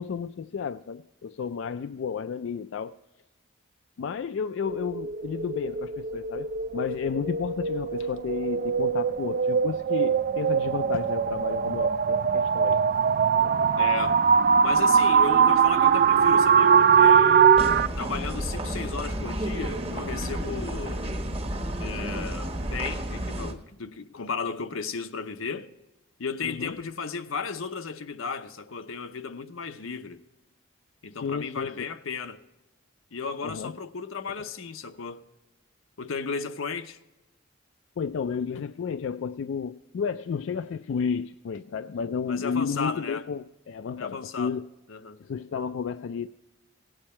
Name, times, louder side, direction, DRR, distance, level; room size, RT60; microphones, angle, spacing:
voice 1, 0.0-3.0 4.0-12.8 13.4-13.7 26.4-26.8 31.2-31.7 33.4-33.7 34.4-34.5 38.0-44.7 45.2-46.3, left 6 dB, 65° left, 0.3 m, -32 dB
sound 1, 4.6-17.9, right 7 dB, 45° right, 0.3 m, -22 dB
voice 2, 13.8-14.2 14.6-17.5 18.0-21.1 21.8-25.7 26.2-30.2 31.0-32.4 33.1-35.2 36.0-37.0 42.3-43.2 44.0-44.5 44.9-45.2, left 5 dB, 90° left, 0.7 m, -34 dB
sound 2, 17.5-23.5, right 1 dB, 30° right, 1.1 m, -31 dB
16.5 x 8.9 x 4.3 m
head